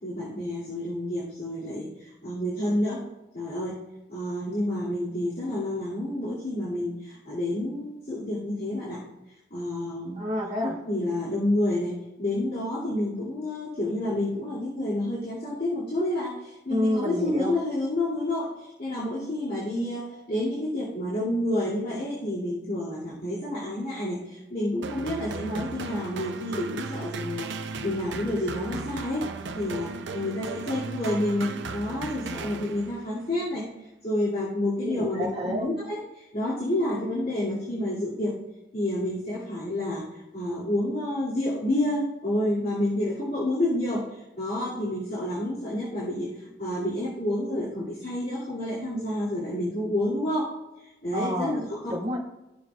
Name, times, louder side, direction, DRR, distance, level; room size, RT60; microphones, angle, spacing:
voice 1, 0.0-3.0 3.3-3.8 4.1-9.0 9.5-10.2 10.6-29.3 29.5-33.7 34.0-38.3 38.7-40.1 40.3-46.3 46.6-50.5 50.8-51.9, left 1 dB, 50° left, -10 dB, 2.6 m, -29 dB
voice 2, 10.2-10.7 16.7-17.5 34.8-35.7 51.1-51.6 51.9-52.2, equal, 35° right, -5 dB, 2.1 m, -28 dB
sound 1, 24.8-33.1, right 4 dB, 90° right, 0.6 m, -36 dB
16.0 x 6.3 x 2.4 m, 0.98 s
head